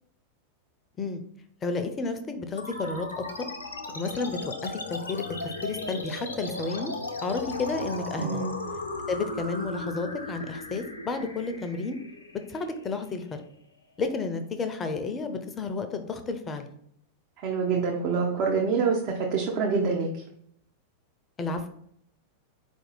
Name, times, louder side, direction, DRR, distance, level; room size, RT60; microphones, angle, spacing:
voice 1, 1.6-3.2 3.9-6.9 7.2-8.4 9.1-12.0 12.5-13.3 14.0-16.7 21.4-21.7, left 3 dB, 20° left, 8 dB, 0.5 m, -31 dB
sound 1, 2.6-13.5, left 2 dB, 80° left, 0.6 m, -36 dB
voice 2, 8.2-8.5 17.4-20.2, right 5 dB, 40° right, -1 dB, 0.6 m, -26 dB
4.5 x 2.6 x 4.0 m, 0.69 s
figure-of-eight pair, 90°, 0 cm